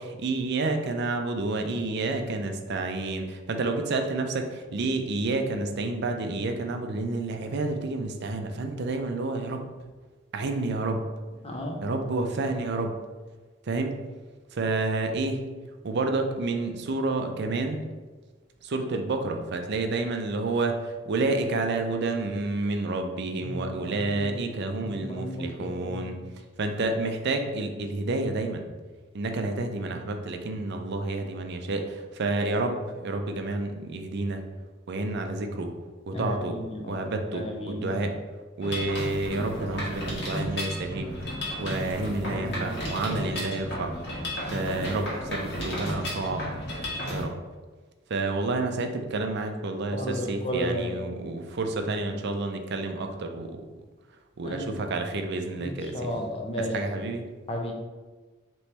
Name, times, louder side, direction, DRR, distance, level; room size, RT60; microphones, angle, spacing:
voice 1, 0.0-9.6 10.3-11.0 11.8-13.0 13.6-14.0 14.5-15.4 15.8-17.8 18.6-26.2 26.6-28.7 29.1-34.4 34.9-35.7 36.1-36.6 36.9-38.2 38.6-41.1 41.6-43.9 44.5-46.5 47.1-47.3 48.1-53.6 54.4-56.1 56.6-57.3, right 2 dB, 55° right, 5 dB, 0.5 m, -29 dB
voice 2, 11.4-11.8 23.4-24.5 24.9-26.2 36.1-37.0 37.3-37.9 42.2-42.7 43.1-43.3 49.9-50.9 54.4-54.7 55.6-56.7 57.5-57.7, equal, 30° left, 0 dB, 0.7 m, -34 dB
Mechanisms, 38.6-47.2, equal, 55° left, 1.4 m, -33 dB
4.2 x 3.0 x 3.3 m, 1.3 s
head